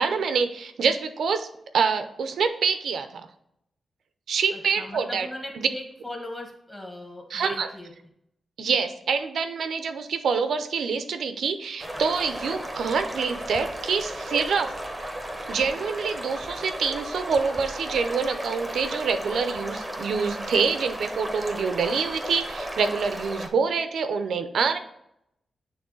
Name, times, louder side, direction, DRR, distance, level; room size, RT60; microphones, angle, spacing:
voice 1, 0.0-1.5 1.7-3.3 4.3-5.3 5.6-5.7 7.3-7.7 8.6-14.7 15.5-24.8, right 5 dB, 80° right, 9 dB, 0.6 m, -26 dB
voice 2, 4.5-7.9, left 1 dB, 10° left, 1 dB, 1.4 m, -39 dB
sound 1, 11.8-23.5, right 1 dB, 10° right, 0.8 m, -34 dB
8.6 x 3.4 x 3.8 m, 0.77 s
wide cardioid pair, 160°, 0 cm